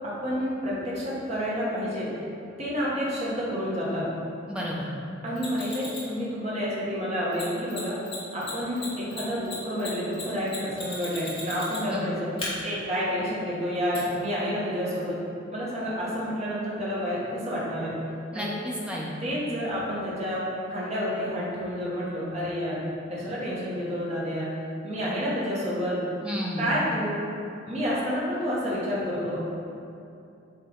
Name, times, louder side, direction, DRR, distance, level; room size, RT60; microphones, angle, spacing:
voice 1, 0.0-2.1 2.6-4.1 5.2-7.9 8.3-12.3 12.6-15.2 15.5-18.0 18.3-18.5 19.2-22.8 23.1-24.5 24.8-26.0 26.6-27.3 27.7-29.4, equal, 35° right, -8 dB, 1.3 m, -29 dB
voice 2, 4.5-4.9 11.9-12.1 18.3-19.1 26.2-26.8, equal, 5° right, -4 dB, 0.8 m, -32 dB
Mechanisms, 5.4-6.1 7.3-7.4 7.7-7.8 8.0-8.2 8.4-12.0 12.4-12.5 13.9-14.0, left 4 dB, 25° left, 1.4 m, -36 dB
7.9 x 3.3 x 3.7 m, 2.6 s
head